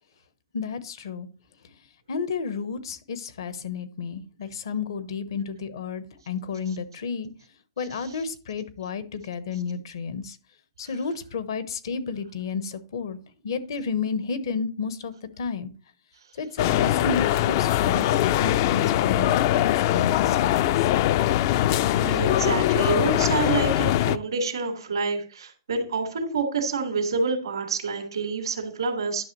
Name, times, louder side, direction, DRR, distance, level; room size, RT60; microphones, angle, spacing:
voice 1, 0.5-1.3 2.1-7.3 7.8-10.4 10.8-13.2 13.4-15.7 16.4-20.7, left 5 dB, 75° left, 13 dB, 1.0 m, -31 dB
sound 1, 16.6-24.2, left 13 dB, 50° left, 0.4 m, -22 dB
voice 2, 22.0-29.3, right 4 dB, 85° right, 1 dB, 2.1 m, -27 dB
10.5 x 6.1 x 3.1 m, 0.37 s
hypercardioid pair, 130°, 2 cm